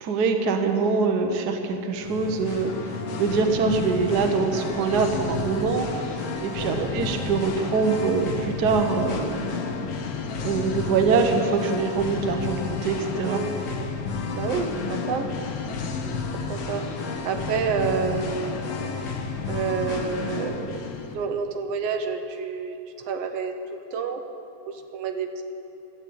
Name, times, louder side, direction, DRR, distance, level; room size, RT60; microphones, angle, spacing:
voice 1, 0.0-2.7 3.2-9.3 10.4-13.4, right 4 dB, 85° right, 5 dB, 0.8 m, -24 dB
Singing, 2.0-21.1, left 4 dB, 60° left, 1.4 m, -31 dB
voice 2, 6.6-6.9 13.2-13.5 14.4-15.3 16.5-18.7 19.5-20.8 21.1-24.2 24.7-25.4, right 5 dB, 65° right, 5 dB, 1.8 m, -29 dB
13.0 x 9.1 x 8.6 m, 2.9 s
omnidirectional pair, 3.3 m